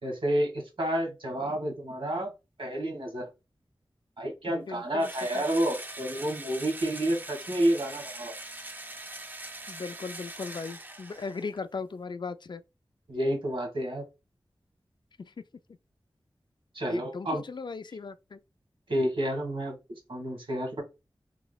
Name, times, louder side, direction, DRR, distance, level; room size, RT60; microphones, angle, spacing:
voice 1, 0.0-2.3 2.6-3.3 4.2-8.3 13.1-14.0 16.7-17.4 18.9-20.8, right 1 dB, 70° right, 1.8 m, -30 dB
voice 2, 4.5-5.1 5.3-5.4 9.7-12.6 15.2-15.3 16.9-18.4, left 4 dB, 55° left, 0.3 m, -38 dB
Engine / Drill, 5.0-11.6, right 1 dB, 20° right, 0.5 m, -42 dB
3.6 x 3.1 x 2.2 m
cardioid pair, 45°, 9 cm